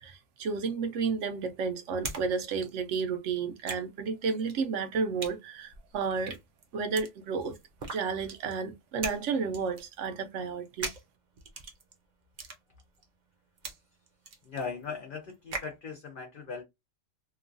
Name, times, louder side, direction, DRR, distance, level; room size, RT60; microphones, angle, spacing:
voice 1, 0.0-6.4 6.7-7.6 7.9-10.9, right 5 dB, 75° right, 1.0 m, -32 dB
sound 1, 0.8-2.3 2.5-15.8, right 3 dB, 45° right, 0.7 m, -42 dB
voice 2, 14.5-16.6, left 5 dB, 55° left, 0.7 m, -38 dB
3.0 x 2.3 x 2.5 m
omnidirectional pair, 1.3 m